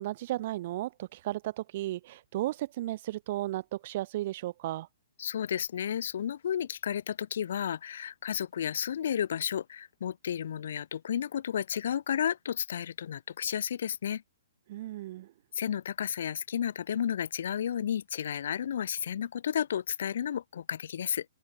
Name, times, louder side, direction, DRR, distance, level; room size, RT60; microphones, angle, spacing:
voice 1, 0.0-4.9 14.7-15.3, right 15 dB, 45° right, 2.6 m, -34 dB
voice 2, 5.2-14.2 15.5-21.2, left 9 dB, 60° left, 1.7 m, -32 dB
open air
hypercardioid pair, 125°, 0 cm